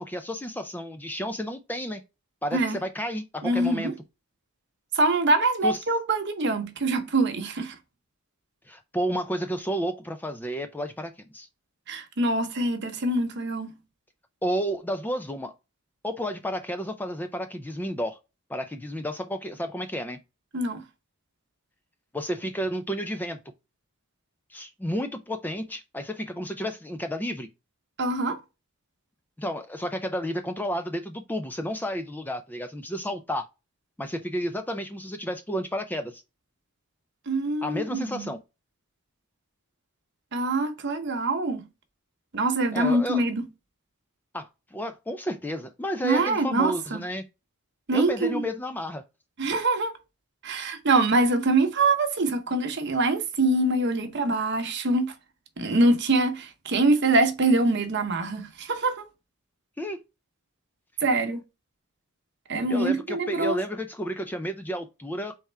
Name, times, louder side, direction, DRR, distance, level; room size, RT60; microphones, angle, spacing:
voice 1, 0.0-2.0 2.4-3.9 5.6-5.8 8.7-11.5 14.4-15.5 16.0-18.2 18.5-20.2 22.1-23.4 24.5-27.5 29.4-33.5 34.0-36.2 37.6-38.4 42.7-43.2 44.3-47.2 47.9-49.0 59.8-60.0 62.7-65.3, equal, 10° left, 0.3 m, -31 dB
voice 2, 3.4-3.9 4.9-7.7 11.9-13.8 20.5-20.8 28.0-28.4 37.3-38.3 40.3-41.6 42.3-43.5 46.0-47.0 47.9-48.4 49.4-49.9 50.4-55.1 55.6-59.0 61.0-61.4 62.5-63.6, right 2 dB, 50° right, 0.9 m, -24 dB
4.2 x 3.5 x 3.3 m
head